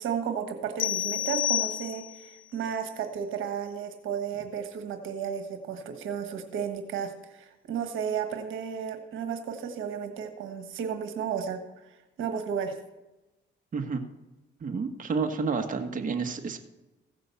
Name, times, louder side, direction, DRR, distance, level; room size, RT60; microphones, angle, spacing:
voice 1, 0.0-12.7, right 7 dB, 85° right, 7 dB, 1.4 m, -33 dB
sound 1, 0.8-2.3, left 12 dB, 85° left, 0.6 m, -29 dB
voice 2, 13.7-14.0 14.6-16.6, right 5 dB, 40° right, 5 dB, 1.5 m, -30 dB
15.5 x 6.0 x 7.0 m, 1.0 s
cardioid pair, 90°, 20 cm